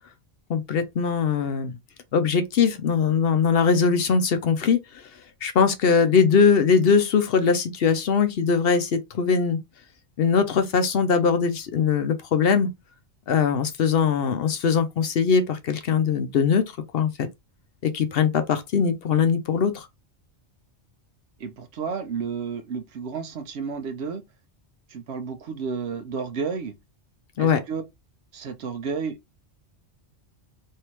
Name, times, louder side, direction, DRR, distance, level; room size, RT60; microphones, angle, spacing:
voice 1, 0.5-1.7 2.1-5.0 5.4-9.6 10.2-12.7 13.3-16.6 16.9-17.1 17.8-19.9 27.4-27.6, left 6 dB, 65° left, 0.8 m, -21 dB
voice 2, 21.4-24.2 24.9-26.7 27.4-27.8 28.3-29.2, right 5 dB, 70° right, 0.9 m, -31 dB
3.3 x 2.7 x 2.9 m
omnidirectional pair, 1.2 m